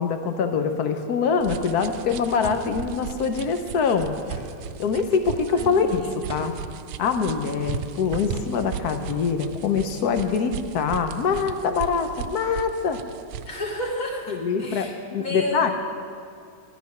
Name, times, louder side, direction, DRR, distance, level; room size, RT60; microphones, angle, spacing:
voice 1, 0.0-4.2 4.8-6.0 6.3-6.5 7.0-13.0 14.3-15.7, left 5 dB, 65° left, 7 dB, 1.0 m, -24 dB
sound 1, 1.4-13.6, right 8 dB, 80° right, 1.4 m, -37 dB
sound 2, 2.4-10.0, right 2 dB, 5° left, 0.8 m, -43 dB
voice 2, 5.5-6.2 13.5-15.7, left 2 dB, 40° left, -2 dB, 2.1 m, -32 dB
13.0 x 10.5 x 5.8 m, 2.3 s
omnidirectional pair, 2.3 m